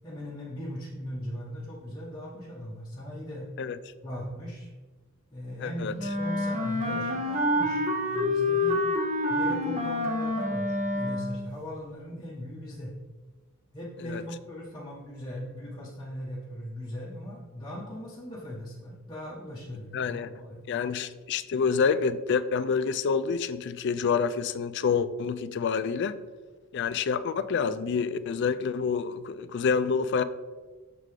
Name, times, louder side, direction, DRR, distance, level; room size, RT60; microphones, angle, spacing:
voice 1, 0.0-3.5 4.0-4.7 5.3-7.8 8.1-8.8 9.3-12.9 13.7-20.7, equal, 20° left, -7 dB, 0.9 m, -39 dB
voice 2, 5.6-5.9 14.0-14.2 19.9-20.3 20.7-26.1 26.7-30.2, left 5 dB, 55° left, 13 dB, 0.3 m, -27 dB
Wind instrument woodwind instrument, 6.0-11.5, left 1 dB, 30° right, 0.9 m, -27 dB
6.6 x 3.7 x 4.8 m, 1.3 s
head